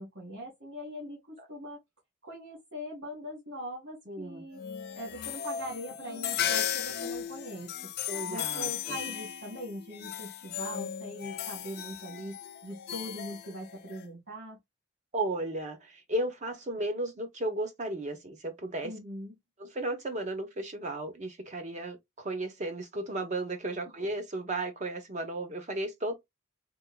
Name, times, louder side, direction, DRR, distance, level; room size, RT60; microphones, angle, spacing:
voice 1, 0.0-1.8 2.2-4.6 4.9-7.9 8.2-14.6 18.8-19.4 24.0-24.1, equal, 65° right, 2.0 m, -41 dB
voice 2, 4.1-4.5 8.1-9.0 15.1-18.9 19.6-26.1, right 1 dB, 35° right, 0.9 m, -34 dB
sound 1, 4.5-14.0, left 9 dB, 55° left, 0.5 m, -36 dB
3.6 x 3.4 x 2.2 m
head